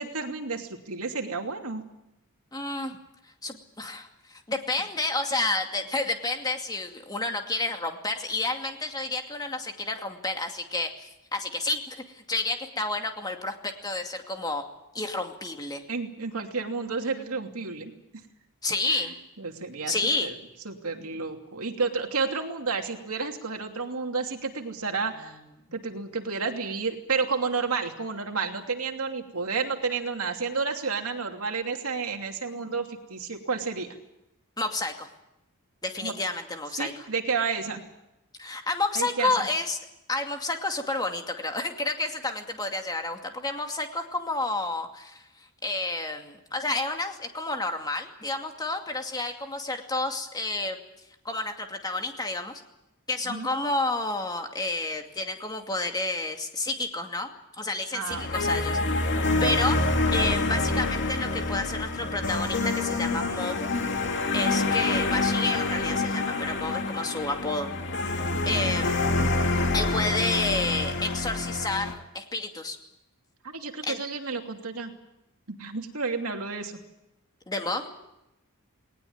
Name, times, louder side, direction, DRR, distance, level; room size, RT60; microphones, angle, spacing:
voice 1, 0.0-1.8 15.9-17.9 18.9-20.3 20.6-25.4 25.7-33.9 36.0-36.2 36.8-37.8 38.9-39.5 53.2-53.5 57.9-58.3 68.5-68.7 73.4-74.9 75.5-76.8, right 4 dB, 70° right, 3 dB, 2.9 m, -31 dB
voice 2, 2.5-3.0 3.4-14.6 14.9-15.8 18.6-19.1 19.9-20.3 25.2-25.7 34.6-35.1 35.8-36.9 38.4-39.8 40.1-45.2 45.6-50.8 51.2-52.6 53.1-57.3 57.6-59.8 60.1-63.7 64.3-67.7 68.5-69.1 69.7-72.8 73.9-74.0 77.5-77.9, left 2 dB, 20° left, 4 dB, 2.5 m, -30 dB
sound 1, 58.1-71.9, left 3 dB, 55° left, 2.4 m, -27 dB
19.5 x 19.0 x 9.6 m, 0.90 s
head